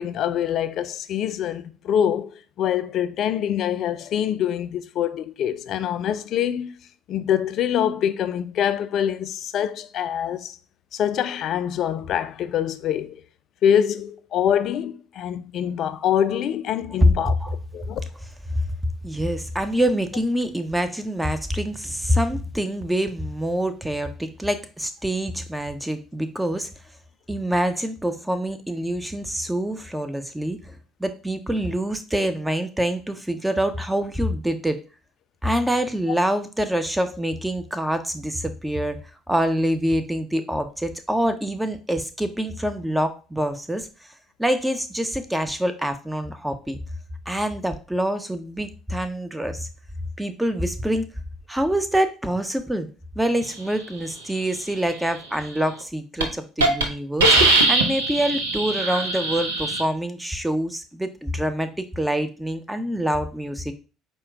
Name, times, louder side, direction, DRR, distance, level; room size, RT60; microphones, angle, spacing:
voice 1, 0.0-6.7 7.1-10.6 10.9-13.2 13.6-17.3 17.7-18.0, left 9 dB, 55° left, 0.3 m, -25 dB
voice 2, 19.0-26.7 27.3-34.8 35.4-44.1 44.4-46.8 47.3-49.7 50.2-51.1 51.5-52.9 53.2-57.4 57.7-63.7, equal, 5° right, 0.6 m, -25 dB
Hiss, 55.6-55.8 56.2-56.3 56.6-56.8 57.2-59.8, right 2 dB, 80° right, 0.6 m, -20 dB
4.3 x 2.1 x 3.5 m
hypercardioid pair, 60°, 0 cm